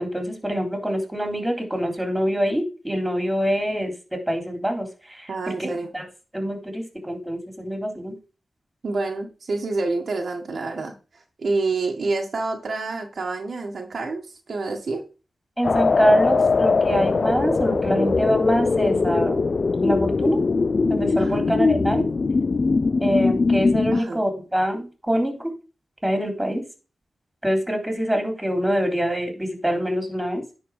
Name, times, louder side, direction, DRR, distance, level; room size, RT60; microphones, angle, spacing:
voice 1, 0.0-5.3 5.9-6.0 6.3-8.1 15.6-19.4 19.8-20.4 20.9-22.1 23.0-25.5 26.0-26.6 27.4-30.4, equal, 10° right, 4 dB, 3.4 m, -24 dB
voice 2, 5.3-5.9 8.8-14.2 14.5-15.0 21.2-21.5 23.9-24.2, right 3 dB, 65° right, 2 dB, 1.7 m, -28 dB
sound 1, 15.6-24.0, left 4 dB, 50° left, 0.4 m, -21 dB
10.0 x 4.8 x 4.9 m, 0.33 s
cardioid pair, 55°, 0 cm